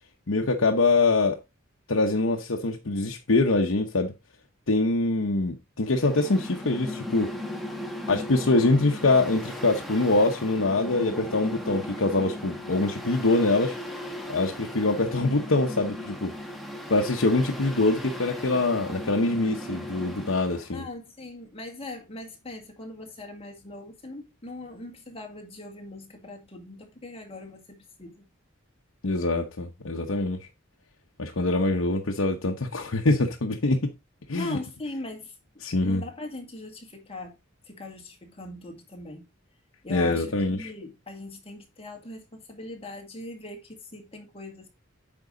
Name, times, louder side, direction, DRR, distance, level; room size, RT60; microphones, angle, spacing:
voice 1, 0.3-1.4 1.9-4.1 4.7-7.3 8.1-13.8 14.3-16.3 16.9-20.8 29.0-30.4 31.2-33.9 34.3-34.6 35.6-36.0 39.9-40.7, left 2 dB, 70° left, 0.9 m, -24 dB
Mechanical fan, 5.8-20.7, left 1 dB, ahead, 1.6 m, -37 dB
voice 2, 20.7-28.2 34.3-35.4 35.8-37.4 37.6-39.3 39.8-44.7, left 2 dB, 30° left, 2.1 m, -40 dB
8.8 x 5.4 x 3.8 m
head